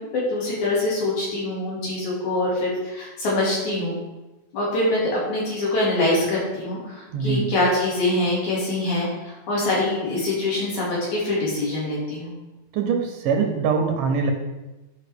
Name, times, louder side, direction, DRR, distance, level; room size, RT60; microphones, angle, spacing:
voice 1, 0.0-4.0 4.5-12.3, left 2 dB, 65° left, -6 dB, 3.8 m, -24 dB
voice 2, 7.1-7.5 12.7-14.3, right 5 dB, 90° right, 3 dB, 2.7 m, -23 dB
11.5 x 5.3 x 3.5 m, 1.1 s
omnidirectional pair, 3.7 m